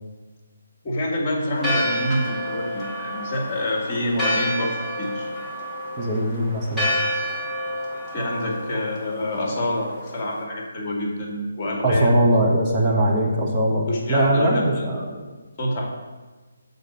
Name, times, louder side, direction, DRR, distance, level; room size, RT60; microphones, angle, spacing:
voice 1, 0.8-5.3 8.1-9.9 10.1-12.2 13.9-14.6 15.6-15.9, left 1 dB, 25° left, 0 dB, 1.7 m, -26 dB
Church bell, 1.5-10.4, equal, 5° left, 1.5 m, -29 dB
voice 2, 6.0-6.9 11.8-15.2, right 1 dB, 15° right, -4 dB, 1.3 m, -21 dB
6.7 x 4.0 x 6.5 m, 1.3 s
figure-of-eight pair, 145°, 0 cm